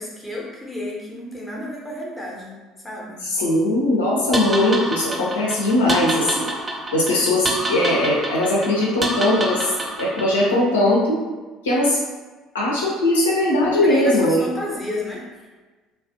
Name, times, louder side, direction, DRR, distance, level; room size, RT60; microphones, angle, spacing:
voice 1, 0.0-2.6 2.8-3.2 13.8-15.3, left 1 dB, 10° left, -3 dB, 0.6 m, -31 dB
voice 2, 3.2-6.5 6.9-9.7 10.0-11.2 11.6-12.0 12.5-14.4, left 1 dB, 75° left, -4 dB, 0.4 m, -19 dB
sound 1, 4.3-10.6, right 1 dB, 25° right, 0.3 m, -28 dB
2.3 x 2.1 x 2.5 m, 1.3 s
figure-of-eight pair, 60°, 0 cm